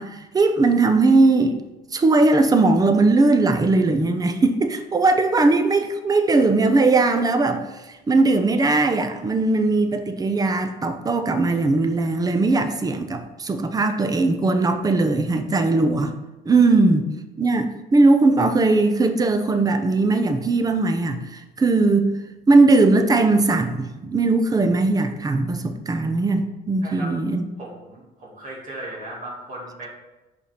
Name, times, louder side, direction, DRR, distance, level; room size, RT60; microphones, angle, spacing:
voice 1, 0.0-1.6 1.9-16.1 16.5-17.1 17.4-22.1 22.5-27.4, right 3 dB, 20° right, 8 dB, 0.7 m, -19 dB
voice 2, 26.8-27.1 27.6-29.9, right 1 dB, 50° right, -5 dB, 2.3 m, -36 dB
5.4 x 4.4 x 5.2 m, 1.0 s
cardioid pair, 110°, 17 cm